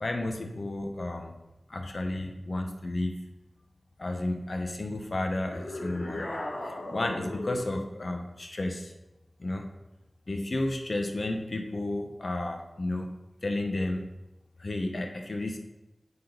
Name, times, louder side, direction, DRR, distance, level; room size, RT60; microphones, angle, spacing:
voice 1, 0.0-1.3 1.7-3.2 4.0-6.3 6.6-8.9 9.4-9.7 10.3-13.1 13.4-14.1 14.6-15.6, left 2 dB, 55° left, 4 dB, 0.9 m, -32 dB
sound 1, 5.5-7.8, left 1 dB, 85° left, 1.0 m, -37 dB
8.1 x 3.9 x 5.2 m, 0.97 s
wide cardioid pair, 60°, 0 cm